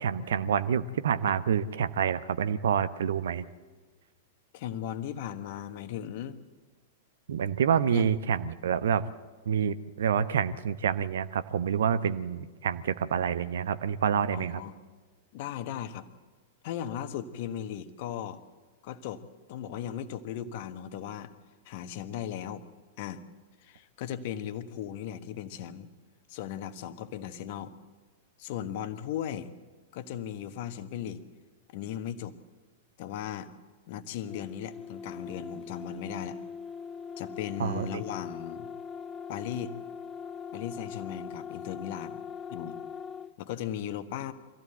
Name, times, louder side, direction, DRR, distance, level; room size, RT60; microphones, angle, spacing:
voice 1, 0.0-3.4 7.3-9.0 9.5-14.6 37.6-37.9, right 8 dB, 60° right, 13 dB, 0.9 m, -27 dB
voice 2, 4.5-6.4 7.9-8.1 14.3-14.8 15.3-16.0 16.6-18.4 18.8-19.2 19.5-21.3 21.6-22.6 23.0-23.2 23.6-25.9 26.3-27.7 28.4-29.5 29.9-31.2 31.7-32.4 33.0-33.5 33.9-36.4 37.2-38.7 39.3-39.7 40.5-42.2 42.5-42.8 43.4-44.3, left 10 dB, 50° left, 10 dB, 1.3 m, -37 dB
sound 1, 34.3-43.3, left 6 dB, 15° left, 0.6 m, -41 dB
24.5 x 15.5 x 7.9 m, 1.4 s
figure-of-eight pair, 95°, 0 cm